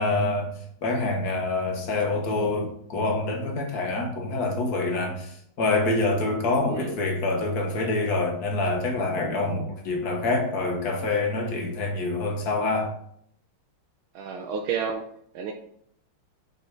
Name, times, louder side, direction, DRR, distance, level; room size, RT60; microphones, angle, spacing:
voice 1, 0.0-13.0, left 2 dB, 50° left, 2 dB, 1.7 m, -26 dB
voice 2, 14.1-15.1 15.3-15.5, right 6 dB, 85° right, 2 dB, 1.5 m, -30 dB
5.5 x 5.5 x 4.7 m, 0.67 s
omnidirectional pair, 2.3 m